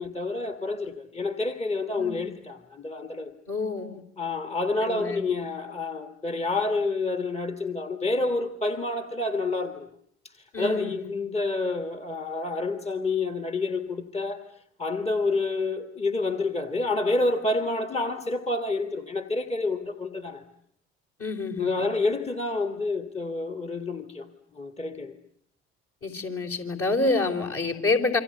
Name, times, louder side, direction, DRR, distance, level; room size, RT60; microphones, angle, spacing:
voice 1, 0.0-3.3 4.2-9.9 10.2-14.5 14.8-20.4 21.6-24.3 24.5-25.1, left 3 dB, 20° left, 1.7 m, -28 dB
voice 2, 2.0-2.3 3.5-4.0 4.8-5.3 10.5-11.1 21.2-21.9 26.0-28.2, left 3 dB, 40° left, 4.0 m, -28 dB
27.5 x 24.5 x 8.0 m
figure-of-eight pair, 50°, 34 cm